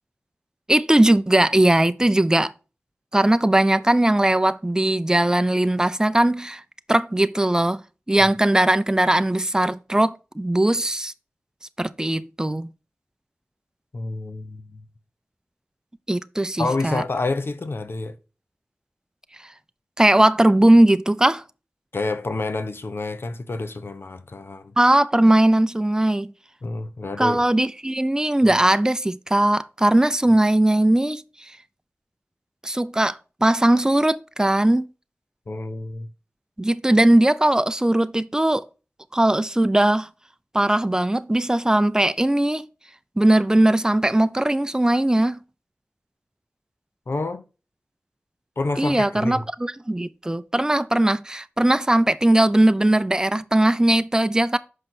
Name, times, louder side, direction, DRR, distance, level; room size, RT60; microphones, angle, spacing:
voice 1, 0.7-2.5 3.1-6.6 6.9-11.1 11.8-12.7 16.1-17.0 20.0-21.4 24.8-26.3 27.2-31.2 32.6-34.8 36.6-38.7 39.1-40.1 40.5-42.6 43.2-45.4 48.8-54.6, right 1 dB, 15° right, 0.5 m, -19 dB
voice 2, 13.9-14.8 16.6-18.2 21.9-24.7 26.6-27.4 35.5-36.1 47.1-47.4 48.6-49.5, left 3 dB, 65° left, 0.8 m, -28 dB
6.5 x 5.2 x 4.4 m
wide cardioid pair, 50°, 4 cm